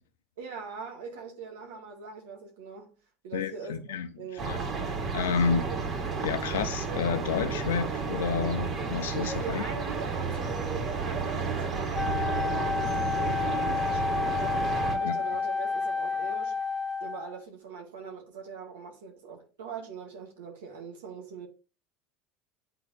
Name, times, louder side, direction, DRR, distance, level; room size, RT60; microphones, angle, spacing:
voice 1, 0.4-2.9 3.2-4.7 9.4-14.4 14.9-16.6 17.0-21.5, right 5 dB, 85° right, 1.7 m, -42 dB
voice 2, 3.3-4.1 4.4-5.7 6.2-9.6 15.0-15.2, left 6 dB, 90° left, 0.7 m, -30 dB
sound 1, 4.4-15.0, right 4 dB, 40° right, 2.3 m, -32 dB
Wind instrument woodwind instrument, 11.9-17.4, left 5 dB, 10° left, 1.2 m, -30 dB
9.4 x 3.9 x 2.7 m
hypercardioid pair, 85°, 0 cm